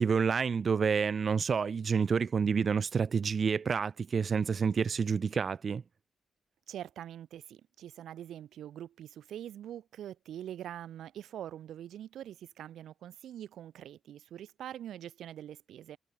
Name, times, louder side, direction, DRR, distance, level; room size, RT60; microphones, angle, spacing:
voice 1, 0.0-5.8, right 6 dB, 40° right, 2.1 m, -28 dB
voice 2, 6.7-16.0, right 11 dB, 85° right, 3.7 m, -44 dB
wide cardioid pair, 140°, 0 cm